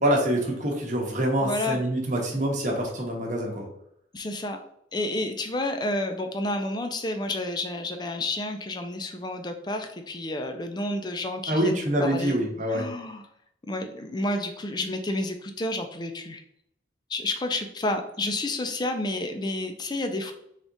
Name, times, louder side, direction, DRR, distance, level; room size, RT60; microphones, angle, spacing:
voice 1, 0.0-3.7 11.5-12.9, right 1 dB, 40° right, 0 dB, 0.9 m, -25 dB
voice 2, 1.4-1.8 4.1-4.6 4.9-12.4 12.7-13.2 13.7-16.4 17.1-20.3, left 2 dB, 20° left, 6 dB, 0.4 m, -30 dB
3.5 x 2.4 x 3.9 m, 0.73 s
head